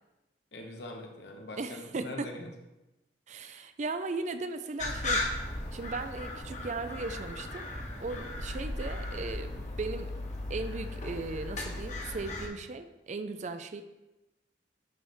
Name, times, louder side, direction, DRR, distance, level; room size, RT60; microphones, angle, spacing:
voice 1, 0.5-2.5, left 1 dB, 65° left, 2 dB, 1.1 m, -43 dB
voice 2, 1.6-2.3 3.3-5.3 5.7-7.7 8.0-10.1 10.5-13.8, right 3 dB, 40° right, 9 dB, 0.4 m, -37 dB
sound 1, 4.8-12.5, left 2 dB, 45° left, 1.1 m, -36 dB
10.0 x 3.4 x 4.3 m, 1.0 s
head